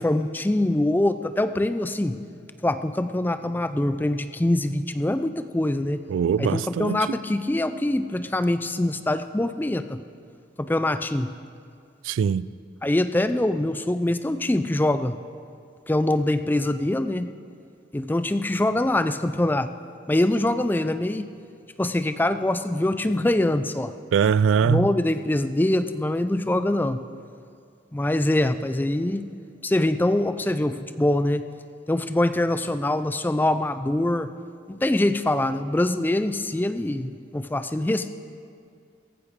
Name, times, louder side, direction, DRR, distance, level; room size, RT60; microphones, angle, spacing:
voice 1, 0.0-2.2 2.6-6.0 6.4-10.0 10.6-11.3 12.8-15.1 15.9-17.3 17.9-19.7 20.1-21.3 21.8-23.9 24.6-27.0 27.9-29.3 29.6-31.4 31.9-34.3 34.7-38.1, left 1 dB, 10° left, 0.3 m, -24 dB
voice 2, 6.1-7.1 12.0-12.5 24.1-24.9, right 7 dB, 90° right, 0.3 m, -22 dB
17.0 x 15.0 x 3.6 m
head